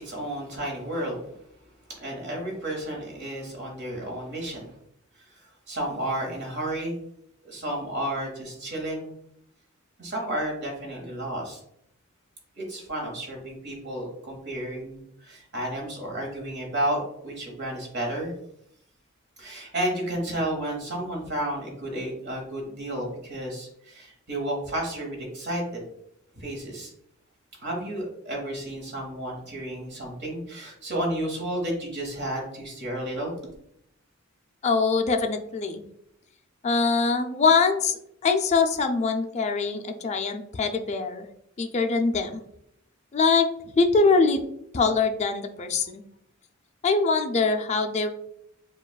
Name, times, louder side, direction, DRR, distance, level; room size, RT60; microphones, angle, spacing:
voice 1, 0.0-1.4 2.0-4.7 5.1-7.0 7.4-9.1 10.0-11.6 12.5-18.3 19.4-25.8 26.3-26.9 27.6-33.3, right 1 dB, 55° right, 0 dB, 1.4 m, -32 dB
voice 2, 34.6-35.8 36.6-41.2 41.6-42.4 43.1-44.4 44.7-46.0 46.8-48.1, left 4 dB, 30° left, 6 dB, 0.4 m, -23 dB
7.0 x 2.4 x 2.3 m, 0.74 s
head